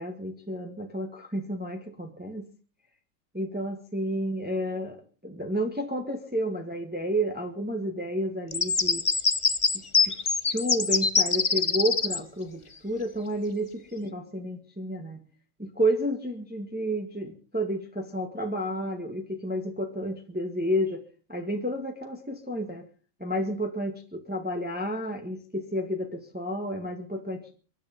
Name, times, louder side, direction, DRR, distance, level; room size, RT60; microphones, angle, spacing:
voice 1, 0.0-2.4 3.3-5.0 5.2-9.1 9.7-10.2 10.5-15.2 15.8-21.0 21.3-22.9 23.2-27.6, equal, 5° right, 4 dB, 1.7 m, -31 dB
sound 1, 8.5-12.2, left 4 dB, 40° left, 0.4 m, -24 dB
23.5 x 11.0 x 5.4 m, 0.40 s
omnidirectional pair, 1.9 m